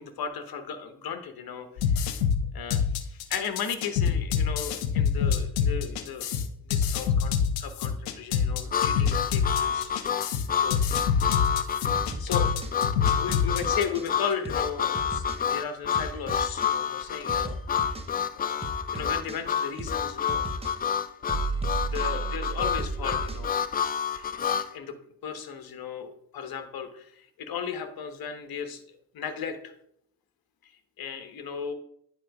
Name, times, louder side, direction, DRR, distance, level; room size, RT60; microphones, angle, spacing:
voice 1, 0.0-2.1 2.5-6.3 6.6-9.9 10.6-12.5 12.9-17.6 18.3-18.6 18.9-20.5 21.9-23.5 24.1-24.4 24.7-24.9 25.2-29.7 30.6-31.7, left 7 dB, 50° left, 8 dB, 1.1 m, -36 dB
sound 1, 1.8-14.1, left 7 dB, 85° left, 0.6 m, -26 dB
Harmonica, 8.7-24.7, left 8 dB, 20° left, 0.3 m, -28 dB
sound 2, 10.9-11.4 11.9-12.7 13.3-14.1 14.4-14.7 14.9-15.4 15.9-16.7 17.3-18.1 18.6-19.4 19.8-20.0 20.3-20.7 21.3-23.5, right 3 dB, 10° right, 0.8 m, -34 dB
10.0 x 4.6 x 2.3 m, 0.70 s
hypercardioid pair, 45°, 47 cm